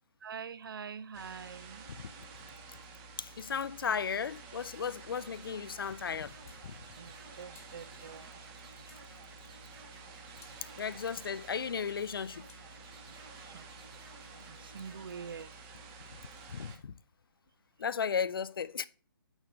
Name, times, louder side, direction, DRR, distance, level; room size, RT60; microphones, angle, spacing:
voice 1, 0.2-1.8 7.0-8.3 13.4-13.6 14.5-15.5, right 6 dB, 65° right, 0.4 m, -45 dB
sound 1, 1.1-16.8, right 4 dB, 15° right, 0.6 m, -51 dB
voice 2, 3.2-6.3 6.6-6.7 10.8-12.5 16.5-16.9 17.8-18.8, left 6 dB, 65° left, 0.5 m, -35 dB
sound 2, 4.8-5.1 6.5-6.7 7.5-7.8 8.9-9.1 10.4-10.6 12.5-12.7, left 7 dB, 35° left, 1.2 m, -59 dB
sound 3, 5.0-15.4, right 2 dB, 85° right, 3.2 m, -57 dB
9.0 x 3.3 x 5.0 m
hypercardioid pair, 165°, 13 cm